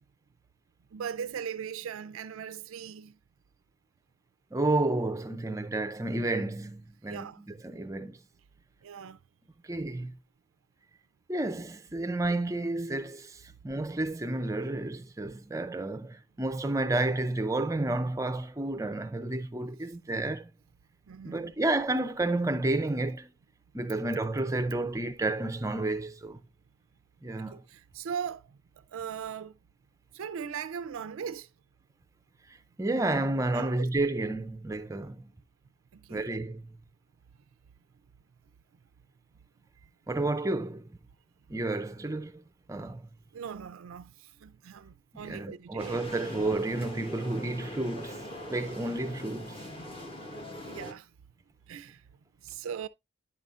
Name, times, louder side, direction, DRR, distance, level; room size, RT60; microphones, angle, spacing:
voice 1, 0.9-3.2 7.1-7.4 8.8-9.2 21.1-21.5 27.4-29.6 30.1-31.5 33.5-33.9 35.9-36.3 43.3-46.0 50.1-50.2 50.6-51.1 51.7-52.0 52.4-52.9, right 7 dB, 75° right, 0.4 m, -39 dB
voice 2, 4.5-8.2 9.6-10.2 11.3-20.5 21.2-23.3 23.7-26.4 27.2-27.6 32.8-35.3 36.1-36.8 40.1-41.0 41.5-42.4 42.7-43.1 45.1-48.2 48.5-49.6, right 2 dB, 15° right, 0.4 m, -31 dB
sound 1, 45.8-50.9, equal, 25° left, 1.1 m, -42 dB
9.7 x 5.4 x 2.4 m
head